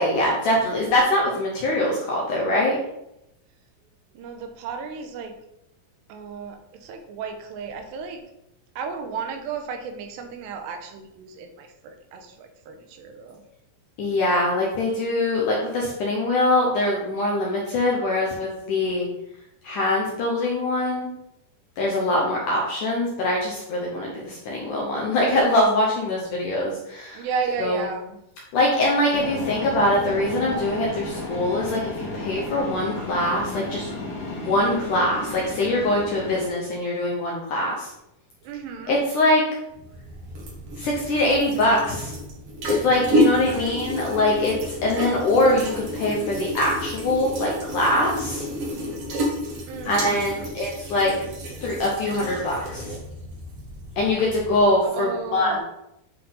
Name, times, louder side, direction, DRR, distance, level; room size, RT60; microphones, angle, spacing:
voice 1, 0.0-2.8 14.0-19.1 19.6-21.1 21.8-27.3 27.6-27.9 28.5-33.9 34.3-37.9 38.9-39.4 40.8-42.1 42.7-48.5 49.8-51.1 51.6-52.9 54.0-55.6, left 1 dB, 70° left, -2 dB, 1.9 m, -23 dB
voice 2, 4.1-5.3 6.1-8.2 8.8-13.4 27.1-28.2 38.4-39.0 43.3-43.8 49.7-50.5 54.9-55.6, right 5 dB, 85° right, 5 dB, 3.0 m, -34 dB
sound 1, 29.1-36.5, left 2 dB, 50° left, 2.7 m, -33 dB
sound 2, 39.7-54.8, equal, 55° right, 1.7 m, -30 dB
9.7 x 3.9 x 4.0 m, 0.84 s
omnidirectional pair, 4.9 m